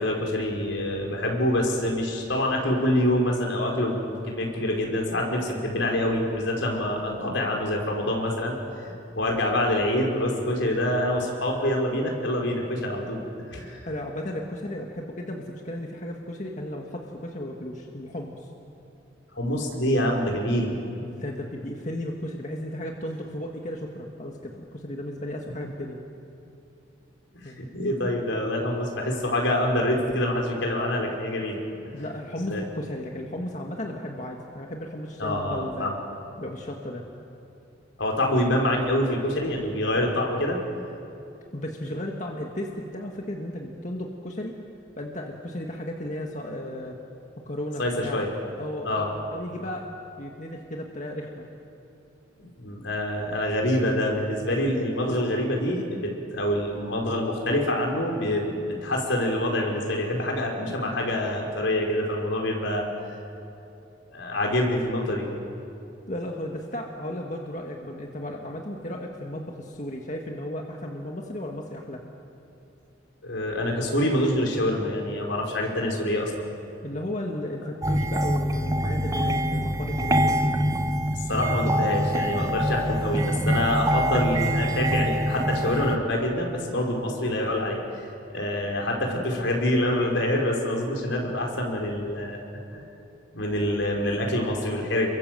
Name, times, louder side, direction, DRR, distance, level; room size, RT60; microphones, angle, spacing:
voice 1, 0.0-8.6 8.8-13.2 13.5-13.8 19.3-20.7 27.4-31.6 32.5-32.6 35.2-36.0 38.0-40.6 47.8-48.3 48.8-49.1 52.4-62.9 64.1-65.3 73.2-76.4 81.3-87.8 88.3-92.4 92.7-92.8 93.3-95.1, left 1 dB, 80° left, 0 dB, 5.0 m, -26 dB
voice 2, 13.8-18.5 21.0-26.0 27.4-27.6 31.9-35.9 36.4-37.0 41.5-44.5 45.0-47.0 47.4-48.2 48.6-48.9 49.3-49.8 50.2-51.4 66.1-72.0 76.8-80.5, left 1 dB, 40° left, 1 dB, 1.9 m, -34 dB
sound 1, 77.8-86.0, equal, 20° right, 1.0 m, -25 dB
30.0 x 23.0 x 7.8 m, 2.8 s
head